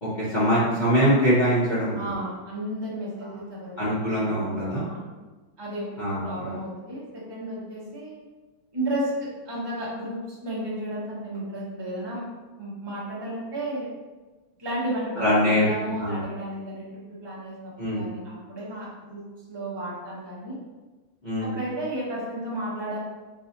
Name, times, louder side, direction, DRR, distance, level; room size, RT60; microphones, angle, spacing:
voice 1, 0.0-2.2 3.8-4.8 6.0-6.5 15.2-15.7 16.0-16.2 17.8-18.1 21.2-21.6, equal, 70° left, -10 dB, 0.4 m, -23 dB
voice 2, 1.9-3.7 4.7-5.0 5.6-8.2 8.7-12.2 12.6-13.9 14.6-19.2 19.5-20.6 21.4-23.0, right 1 dB, 20° right, -7 dB, 0.6 m, -33 dB
5.5 x 2.7 x 2.6 m, 1.2 s
omnidirectional pair, 2.3 m